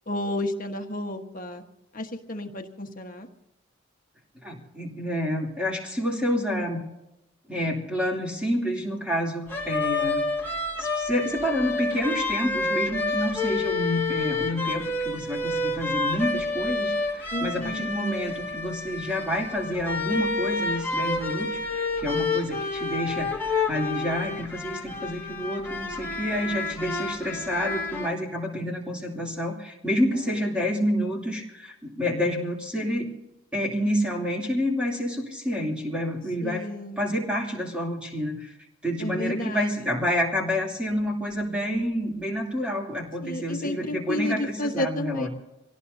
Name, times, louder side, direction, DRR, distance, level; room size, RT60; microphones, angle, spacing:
voice 1, 0.1-1.6 1.9-3.3 17.3-17.9 29.9-30.8 36.4-37.0 39.0-39.9 43.2-45.3, left 1 dB, 40° left, 4 dB, 1.4 m, -32 dB
voice 2, 4.4-6.8 7.5-10.3 10.8-33.1 33.5-36.7 37.0-38.5 38.8-45.3, equal, 5° right, -1 dB, 2.8 m, -28 dB
sound 1, 9.5-28.1, left 3 dB, 10° left, 1.8 m, -29 dB
26.5 x 18.0 x 2.7 m, 0.92 s
head